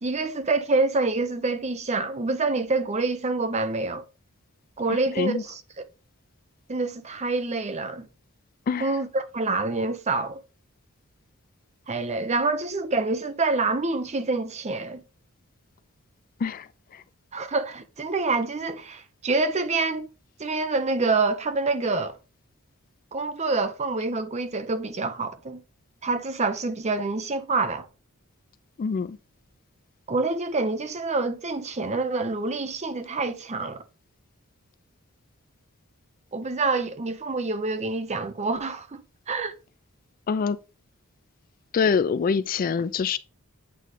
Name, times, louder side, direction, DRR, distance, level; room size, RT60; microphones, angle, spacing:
voice 1, 0.0-4.0 4.8-5.9 6.7-8.1 8.8-10.4 11.9-15.0 17.3-20.1 20.4-22.2 23.1-25.6 26.0-27.9 30.1-33.8 36.3-39.0 39.3-39.5, right 3 dB, 30° right, 0.7 m, -27 dB
voice 2, 4.9-5.4 8.7-8.9 16.4-16.7 16.9-17.0 28.8-29.2 40.3-40.6 41.7-43.2, left 5 dB, 40° left, 0.3 m, -25 dB
8.4 x 3.1 x 3.7 m
head